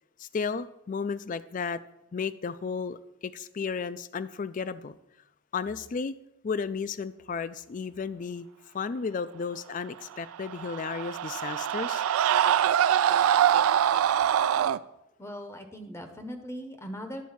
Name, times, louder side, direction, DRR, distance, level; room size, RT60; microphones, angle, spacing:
voice 1, 0.2-1.8 2.1-3.0 3.2-5.0 5.5-6.1 6.4-8.5 8.7-12.0, left 5 dB, 35° left, 0.3 m, -33 dB
Screaming, 10.3-14.8, right 10 dB, 75° right, 0.3 m, -24 dB
voice 2, 15.2-17.2, equal, 10° left, 0.7 m, -39 dB
10.5 x 4.2 x 7.1 m
head